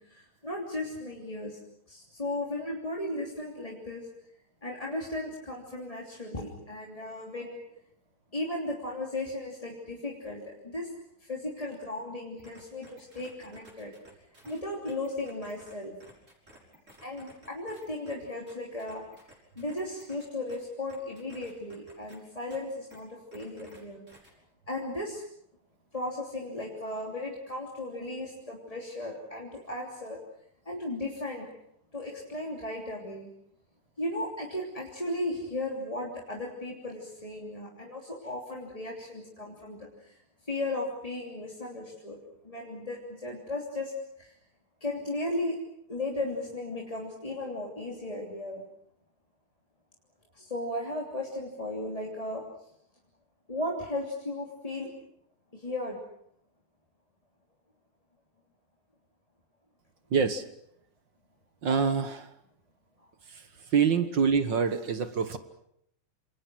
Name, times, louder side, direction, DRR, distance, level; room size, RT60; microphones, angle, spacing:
voice 1, 0.0-1.6 1.9-4.1 4.6-7.6 8.3-10.9 11.2-13.9 14.4-16.0 17.0-24.0 24.7-25.2 25.9-30.2 30.6-31.5 31.9-33.3 34.0-40.2 40.5-43.9 44.2-44.4 44.8-45.6 45.9-48.6 50.3-52.5 53.5-54.9 55.5-56.0, left 1 dB, 10° left, -2 dB, 2.9 m, -36 dB
sound 1, 12.4-15.7 16.0-18.1 18.5-20.6 20.9-22.2 22.5-22.6 22.9-23.0 23.3-23.8 24.1-24.3, right 1 dB, 20° right, 6.3 m, -54 dB
voice 2, 60.1-60.4 61.6-62.3 63.7-65.4, right 6 dB, 50° right, 10 dB, 1.5 m, -25 dB
28.0 x 27.0 x 6.2 m, 0.73 s
omnidirectional pair, 3.7 m